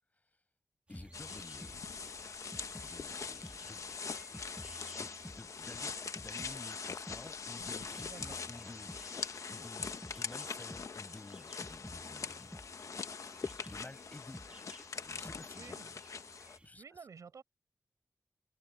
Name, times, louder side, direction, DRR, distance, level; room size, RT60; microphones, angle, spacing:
voice 1, 0.9-1.9 2.8-4.1 4.7-13.1 13.6-14.4 14.9-16.0 16.6-17.1, left 2 dB, 30° left, 7.8 m, -53 dB
sound 1, 0.9-3.6 3.9-6.6 6.8-10.2 10.5-10.9 11.1-13.9 14.1-14.5 14.8-15.4, equal, 5° left, 1.0 m, -53 dB
sound 2, 0.9-16.7, right 2 dB, 20° right, 2.9 m, -61 dB
sound 3, 1.1-16.6, left 5 dB, 70° left, 0.9 m, -43 dB
voice 2, 8.1-8.4 15.6-15.9 16.8-17.4, right 6 dB, 85° right, 5.5 m, -51 dB
open air
wide cardioid pair, 80°, 6 cm